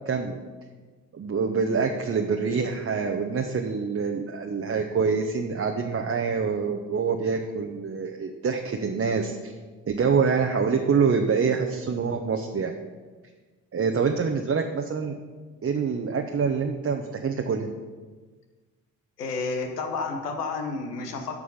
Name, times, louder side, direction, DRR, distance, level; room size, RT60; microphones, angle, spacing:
voice 1, 0.1-0.4 1.1-9.5 9.9-12.7 13.7-15.2 15.6-17.7, right 5 dB, 30° right, 3 dB, 0.9 m, -26 dB
voice 2, 19.2-21.4, left 4 dB, 90° left, 4 dB, 1.0 m, -30 dB
13.0 x 4.8 x 5.7 m, 1.4 s
figure-of-eight pair, 40°, 46 cm